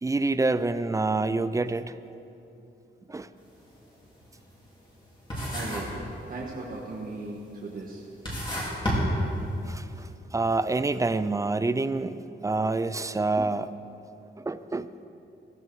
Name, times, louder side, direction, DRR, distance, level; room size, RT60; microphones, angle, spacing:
voice 1, 0.0-2.0 3.1-3.3 9.7-12.2 12.4-13.7 14.4-14.9, right 3 dB, 15° right, 13 dB, 0.4 m, -27 dB
sound 1, 3.4-3.6 4.0-5.0 5.3-6.1 6.3-6.9 7.5-7.6 8.1-9.8, equal, 25° left, 3.5 m, -30 dB
voice 2, 5.5-6.0 6.3-8.0 9.3-9.4, right 2 dB, 45° right, -3 dB, 1.4 m, -37 dB
16.5 x 15.0 x 4.7 m, 2.8 s
wide cardioid pair, 175°, 20 cm